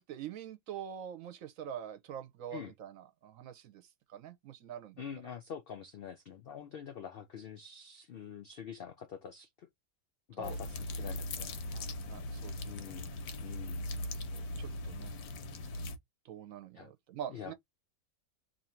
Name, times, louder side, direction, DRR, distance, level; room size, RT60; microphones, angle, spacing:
voice 1, 0.0-3.8 4.1-5.0 10.4-10.6 11.7-13.0 14.1-15.1 16.2-17.5, right 9 dB, 70° right, 1.0 m, -45 dB
voice 2, 5.0-9.7 10.3-11.5 12.7-13.1 13.4-13.9 16.7-16.9 17.3-17.5, left 7 dB, 70° left, 0.5 m, -45 dB
sound 1, 10.4-16.0, left 1 dB, 85° left, 1.3 m, -39 dB
3.0 x 2.6 x 4.3 m
omnidirectional pair, 1.6 m